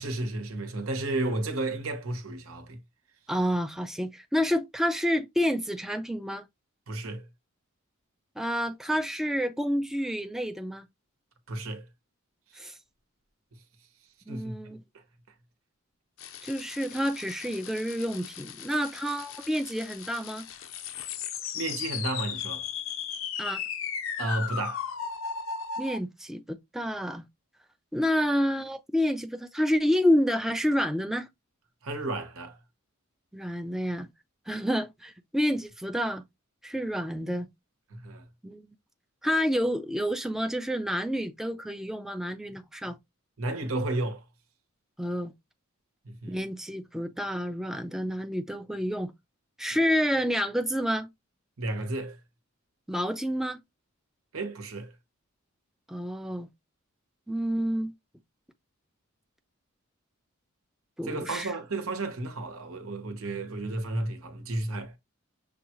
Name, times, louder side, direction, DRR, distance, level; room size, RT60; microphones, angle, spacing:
voice 1, 0.0-2.8 6.9-7.2 11.5-11.8 14.3-14.5 21.5-22.6 24.2-24.9 31.8-32.6 37.9-38.2 43.4-44.2 46.0-46.4 51.6-52.2 54.3-54.9 61.0-64.9, right 2 dB, 85° right, 1.0 m, -32 dB
voice 2, 3.3-6.5 8.4-10.9 12.6-12.8 14.3-14.8 16.4-20.5 23.4-23.6 25.8-27.2 27.9-31.3 33.3-34.1 34.5-36.2 36.6-37.5 38.4-38.6 39.2-43.0 45.0-45.3 46.3-49.1 49.6-51.1 52.9-53.6 55.9-56.5 57.3-57.9 61.0-61.5, equal, ahead, 0.4 m, -29 dB
sound 1, 16.2-26.0, left 7 dB, 65° left, 0.5 m, -36 dB
6.7 x 2.3 x 2.9 m
head